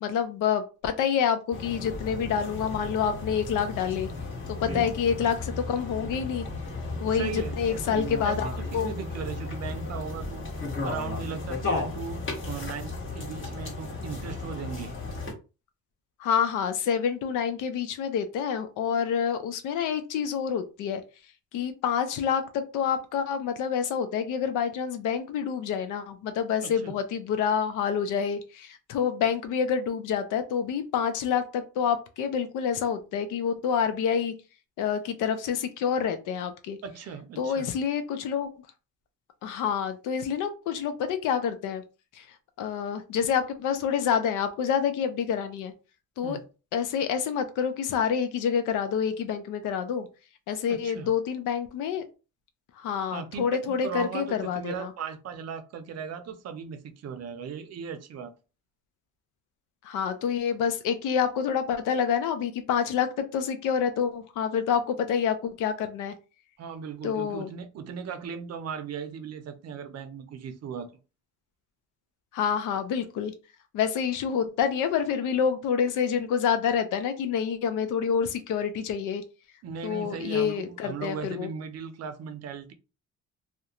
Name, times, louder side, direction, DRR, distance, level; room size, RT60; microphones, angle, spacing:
voice 1, 0.0-4.1 4.5-6.4 7.0-8.5 8.7-8.9 16.2-21.0 21.5-34.3 34.8-36.8 37.4-38.5 39.4-41.8 42.1-42.3 42.6-45.7 46.2-46.4 46.7-50.1 50.5-52.1 52.8-54.9 59.8-66.1 67.0-67.5 72.3-73.3 73.7-79.2 79.8-81.5, left 7 dB, 90° left, 0.5 m, -27 dB
sound 1, 1.5-15.3, left 3 dB, 40° left, 1.1 m, -34 dB
voice 2, 7.1-10.4 10.8-15.0 26.6-27.0 36.8-37.7 46.2-46.5 50.7-51.1 53.1-58.3 66.6-70.9 79.6-82.7, right 6 dB, 55° right, 0.5 m, -37 dB
2.4 x 2.2 x 2.8 m
cardioid pair, 90°, 30 cm